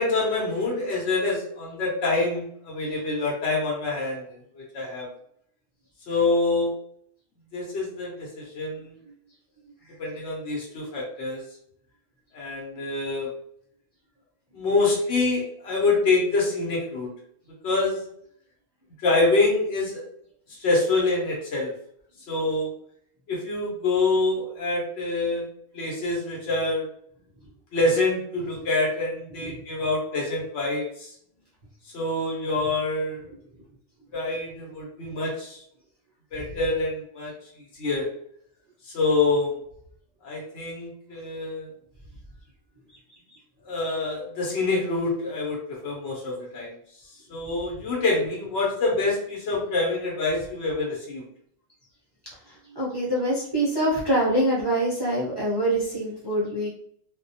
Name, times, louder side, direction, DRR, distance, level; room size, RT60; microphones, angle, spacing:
voice 1, 0.0-5.1 6.1-6.7 7.5-8.9 10.0-11.4 12.3-13.3 14.5-17.1 17.6-18.1 19.0-20.0 20.5-21.7 22.3-22.7 23.3-25.5 25.7-26.9 27.7-31.1 31.9-33.3 34.1-35.6 36.3-37.3 37.7-38.1 38.8-39.6 40.2-41.7 43.6-46.7 47.3-51.3, left 3 dB, 65° left, -3 dB, 0.9 m, -26 dB
voice 2, 52.4-56.7, right 1 dB, 40° right, -7 dB, 0.3 m, -25 dB
2.3 x 2.1 x 2.6 m, 0.67 s
omnidirectional pair, 1.3 m